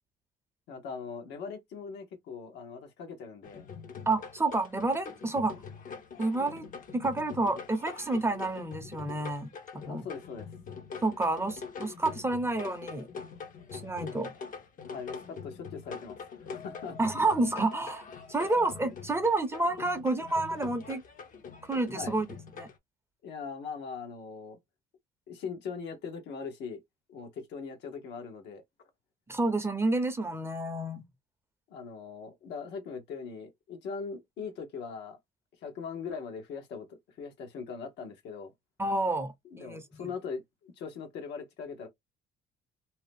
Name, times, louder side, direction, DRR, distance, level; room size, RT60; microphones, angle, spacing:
voice 1, 0.7-3.7 9.8-10.5 14.8-17.0 21.9-22.2 23.2-24.6 25.3-26.8 27.1-28.6 31.7-35.2 35.6-38.5 39.4-41.9, left 5 dB, 70° left, 0.9 m, -40 dB
sound 1, 3.4-22.8, left 5 dB, 45° left, 0.7 m, -44 dB
voice 2, 4.1-5.6 6.2-6.7 6.9-10.1 11.0-13.1 13.7-14.3 17.0-21.0 21.7-22.2 22.6-22.7 29.3-31.0 38.8-39.8, right 2 dB, 15° right, 0.7 m, -29 dB
2.7 x 2.0 x 3.3 m
supercardioid pair, 90°, 19 cm